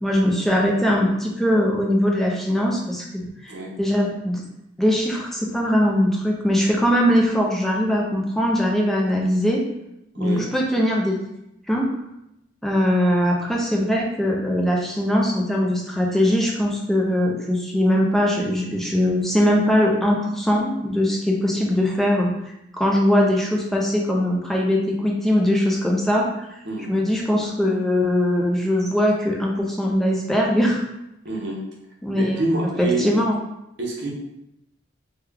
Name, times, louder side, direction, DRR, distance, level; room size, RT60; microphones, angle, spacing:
voice 1, 0.0-3.5 3.8-4.4 4.8-9.6 10.2-11.2 11.7-11.9 12.6-22.3 22.7-26.5 26.9-30.8 32.0-32.4 32.8-33.4, equal, ahead, -2 dB, 0.4 m, -21 dB
voice 2, 10.1-10.5 26.6-26.9 31.2-31.6 32.1-33.1 33.8-34.1, right 2 dB, 60° right, -3 dB, 0.8 m, -26 dB
3.3 x 2.2 x 3.4 m, 0.85 s
head